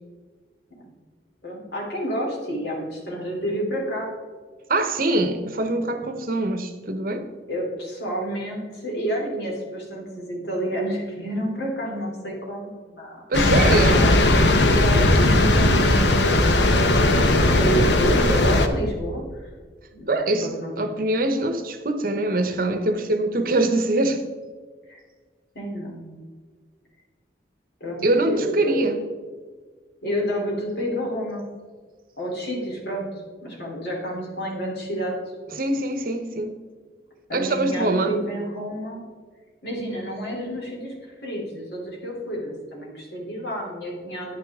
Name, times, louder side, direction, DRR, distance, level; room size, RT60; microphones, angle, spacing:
voice 1, 1.4-4.1 7.5-13.2 13.9-14.2 14.6-17.3 17.6-19.5 19.9-20.7 24.9-25.0 25.5-26.2 27.8-28.8 30.0-31.5 32.2-33.1 33.4-35.1 37.3-39.0 39.6-44.4, equal, 70° left, -2 dB, 3.1 m, -29 dB
voice 2, 4.7-7.3 13.3-14.1 20.1-24.2 28.0-29.0 35.5-36.6 37.3-38.2, right 2 dB, 55° right, 8 dB, 0.9 m, -23 dB
sound 1, 13.3-18.7, left 1 dB, 90° left, 0.9 m, -18 dB
10.0 x 9.4 x 3.6 m, 1.5 s
head